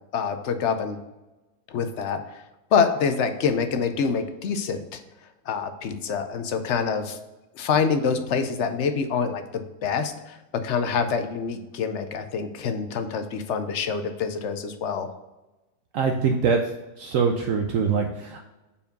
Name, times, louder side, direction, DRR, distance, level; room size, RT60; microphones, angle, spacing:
voice 1, 0.1-1.0 1.7-2.4 2.7-5.0 5.5-7.2 7.6-15.1, left 6 dB, 60° left, 8 dB, 0.8 m, -26 dB
voice 2, 15.9-16.6 17.0-18.4, right 5 dB, 70° right, 3 dB, 0.9 m, -23 dB
5.3 x 4.6 x 5.1 m, 1.0 s
omnidirectional pair, 1.5 m